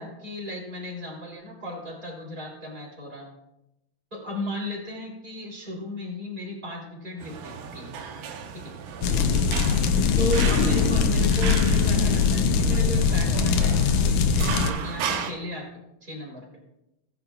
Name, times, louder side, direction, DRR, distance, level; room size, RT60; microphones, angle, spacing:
voice 1, 0.0-3.3 4.1-8.1 8.5-8.8 10.2-14.0 14.2-16.6, equal, 15° right, -3 dB, 3.5 m, -35 dB
sound 1, 7.2-15.3, right 7 dB, 85° right, 2.3 m, -35 dB
sound 2, 9.0-14.7, left 5 dB, 80° left, 2.2 m, -21 dB
17.0 x 10.0 x 2.5 m, 0.90 s
omnidirectional pair, 3.4 m